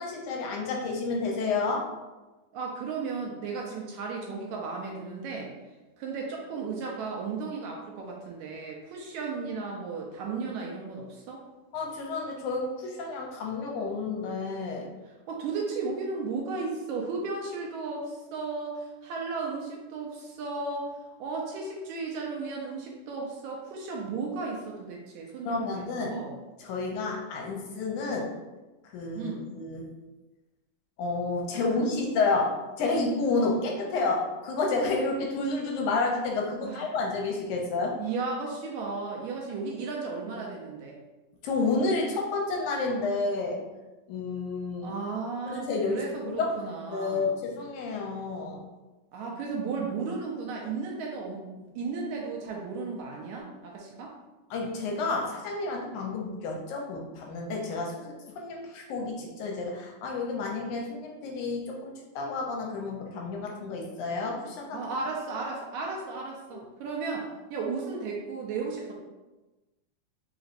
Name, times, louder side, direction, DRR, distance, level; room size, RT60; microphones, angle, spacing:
voice 1, 0.0-1.9 11.7-14.9 25.5-26.2 26.6-28.3 28.9-29.9 31.0-38.0 41.4-43.6 44.1-44.9 45.5-46.5 46.9-48.6 54.5-64.8 66.5-66.7, left 3 dB, 80° left, 0 dB, 2.0 m, -30 dB
voice 2, 2.5-5.5 6.0-11.4 15.3-20.9 21.2-26.3 29.1-29.4 31.7-31.8 36.6-36.8 38.0-41.0 44.8-47.3 49.1-54.1 64.7-69.0, right 4 dB, 80° right, -1 dB, 1.8 m, -35 dB
5.0 x 3.0 x 2.5 m, 1.1 s
omnidirectional pair, 3.6 m